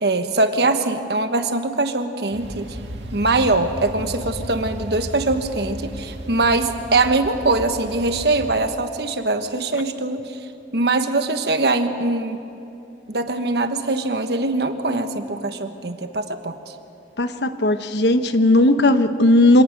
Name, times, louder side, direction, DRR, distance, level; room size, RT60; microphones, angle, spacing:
voice 1, 0.0-2.8 3.1-10.4 10.7-12.4 13.1-16.6, right 2 dB, 65° right, 8 dB, 1.3 m, -22 dB
sound 1, 2.3-8.6, equal, 85° right, 1.9 m, -35 dB
voice 2, 17.2-19.6, left 1 dB, 75° left, 9 dB, 1.0 m, -16 dB
25.5 x 18.5 x 6.6 m, 2.8 s
head